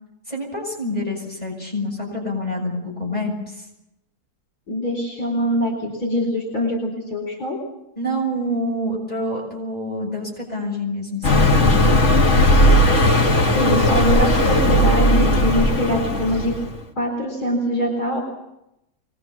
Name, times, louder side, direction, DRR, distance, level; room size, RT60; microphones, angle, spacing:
voice 1, 0.3-3.7 8.0-12.0, left 1 dB, 25° left, -2 dB, 6.9 m, -27 dB
voice 2, 4.7-7.6 13.5-16.6 17.0-18.2, equal, 65° left, 1 dB, 4.6 m, -23 dB
Car passing by, 11.2-16.8, left 1 dB, 45° left, 2.4 m, -16 dB
24.5 x 20.5 x 7.3 m, 0.87 s
omnidirectional pair, 1.7 m